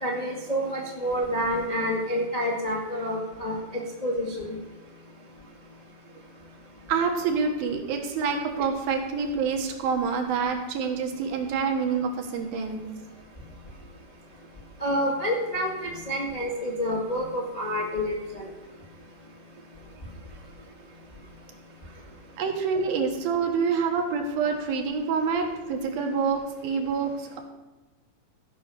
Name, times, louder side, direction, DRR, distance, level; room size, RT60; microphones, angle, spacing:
voice 1, 0.0-4.6 14.8-18.5, equal, 35° left, -2 dB, 0.6 m, -28 dB
voice 2, 6.9-12.8 22.4-27.1, right 5 dB, 75° right, 2 dB, 3.2 m, -27 dB
14.0 x 5.5 x 7.0 m, 1.1 s
omnidirectional pair, 4.3 m